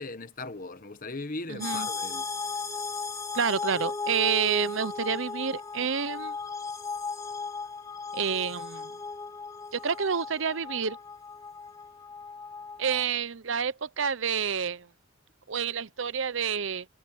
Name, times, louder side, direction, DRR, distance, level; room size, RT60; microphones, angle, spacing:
voice 1, 0.0-2.2, left 3 dB, 40° left, 1.1 m, -38 dB
voice 2, 1.5-1.9 3.3-6.4 8.1-8.9 9.7-11.0 12.8-14.9 15.5-16.9, right 6 dB, 65° right, 0.8 m, -29 dB
sound 1, 1.6-13.0, left 4 dB, 15° left, 3.5 m, -36 dB
head